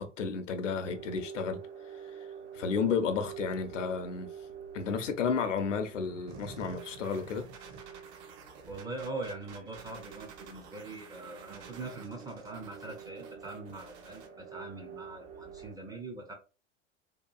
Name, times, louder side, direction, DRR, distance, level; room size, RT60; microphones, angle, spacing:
voice 1, 0.0-1.6 2.5-4.3 4.7-7.5, left 5 dB, 75° left, 0.6 m, -32 dB
sound 1, 0.7-15.7, right 7 dB, 70° right, 1.0 m, -48 dB
sound 2, 6.3-14.3, right 5 dB, 40° right, 0.7 m, -51 dB
voice 2, 8.7-16.3, right 3 dB, 10° right, 0.4 m, -42 dB
2.8 x 2.4 x 2.2 m
figure-of-eight pair, 85°, 37 cm